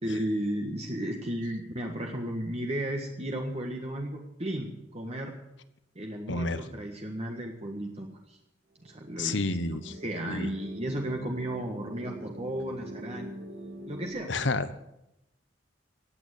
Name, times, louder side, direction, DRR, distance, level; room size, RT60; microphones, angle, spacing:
voice 1, 0.0-5.3 5.9-8.4 8.8-9.4 9.9-13.3 13.9-14.3, right 1 dB, 35° right, 1 dB, 1.6 m, -34 dB
voice 2, 6.3-6.6 9.2-9.9 10.3-10.5 14.3-14.7, left 3 dB, 75° left, 13 dB, 1.1 m, -29 dB
sound 1, 8.8-14.1, right 1 dB, 60° right, 4.1 m, -43 dB
17.0 x 9.1 x 8.4 m, 0.85 s
head